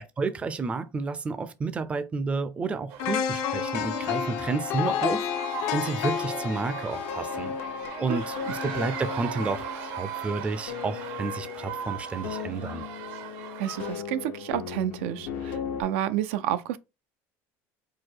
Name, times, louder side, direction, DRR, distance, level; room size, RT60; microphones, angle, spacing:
voice 1, 0.2-7.5 8.0-12.9, right 4 dB, 20° right, 0.4 m, -31 dB
sound 1, 2.9-13.9, right 9 dB, 70° right, 0.8 m, -39 dB
sound 2, 3.0-9.0 9.4-9.5, left 8 dB, 65° left, 0.6 m, -31 dB
sound 3, 6.9-15.8, left 7 dB, 85° left, 1.0 m, -37 dB
voice 2, 8.1-8.4 13.6-16.8, right 11 dB, 90° right, 0.5 m, -30 dB
4.7 x 2.2 x 4.4 m
cardioid pair, 140°, 7 cm